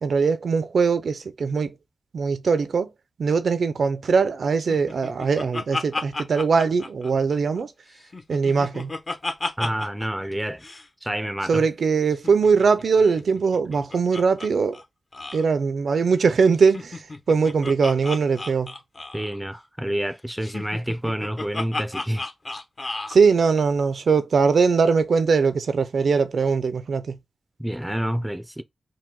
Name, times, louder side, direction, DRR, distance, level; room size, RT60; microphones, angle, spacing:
voice 1, 0.0-1.7 2.1-2.9 3.2-7.7 8.3-8.9 11.5-14.8 15.3-18.7 23.1-27.2, right 5 dB, 80° right, 0.5 m, -21 dB
Laughter, 4.7-7.6 8.0-10.1 10.3-10.4 10.6-10.9 12.1-14.5 14.7-14.8 15.1-15.4 16.6-19.4 20.4-23.2, left 2 dB, 40° left, 0.9 m, -33 dB
voice 2, 9.6-10.6 11.0-11.7 19.1-22.2 27.6-28.6, equal, 5° right, 0.5 m, -28 dB
4.7 x 2.2 x 3.7 m
wide cardioid pair, 110°, 0 cm